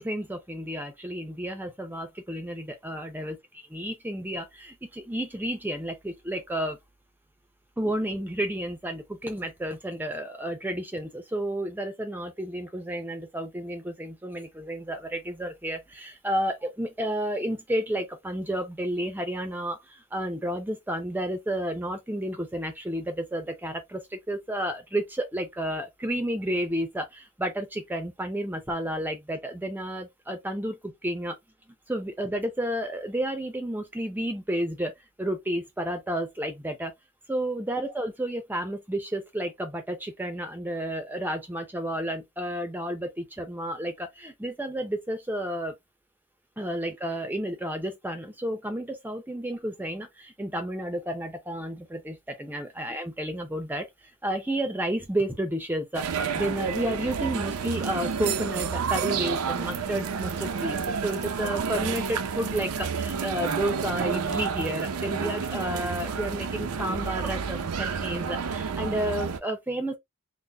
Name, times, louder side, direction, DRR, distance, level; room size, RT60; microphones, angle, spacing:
voice 1, 0.0-6.8 7.8-31.4 31.9-36.9 37.3-45.7 46.6-70.0, right 1 dB, 10° right, 0.5 m, -31 dB
sound 1, 55.9-69.4, right 6 dB, 80° right, 0.5 m, -30 dB
3.8 x 2.0 x 3.3 m
head